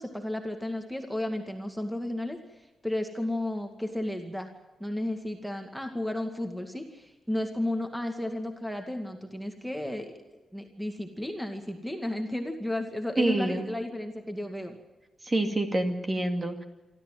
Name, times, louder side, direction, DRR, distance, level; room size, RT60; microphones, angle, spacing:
voice 1, 0.0-2.4 2.8-4.5 4.8-10.1 10.5-14.7, left 1 dB, ahead, 5 dB, 2.2 m, -33 dB
voice 2, 13.2-13.7 15.2-16.6, right 1 dB, 20° right, 5 dB, 2.4 m, -27 dB
26.0 x 13.5 x 9.2 m, 1.1 s
wide cardioid pair, 130°, 0 cm